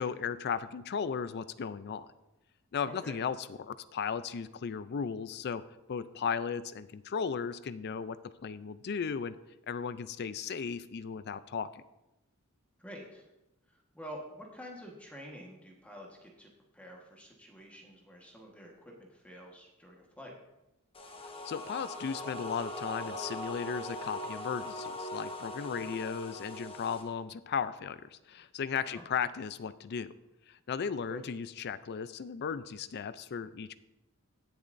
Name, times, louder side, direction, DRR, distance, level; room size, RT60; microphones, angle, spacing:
voice 1, 0.0-2.1 2.7-5.6 5.9-9.3 9.7-11.8 21.4-30.1 30.5-33.8, left 6 dB, 50° left, 15 dB, 0.4 m, -36 dB
voice 2, 12.8-13.3 13.7-20.3 28.8-29.0 31.1-31.2, equal, 5° left, -1 dB, 1.3 m, -48 dB
sound 1, 20.9-27.0, left 1 dB, 25° left, 1.1 m, -41 dB
17.0 x 7.0 x 2.6 m, 0.94 s
head